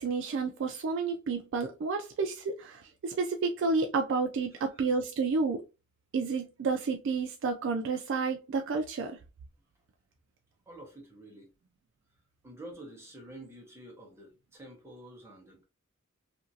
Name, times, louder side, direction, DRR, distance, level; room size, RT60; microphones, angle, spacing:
voice 1, 0.0-5.6 6.1-9.2, right 4 dB, 60° right, 0.3 m, -30 dB
voice 2, 10.7-11.5 12.4-15.6, right 1 dB, 10° right, 0.9 m, -49 dB
2.8 x 2.5 x 2.7 m
head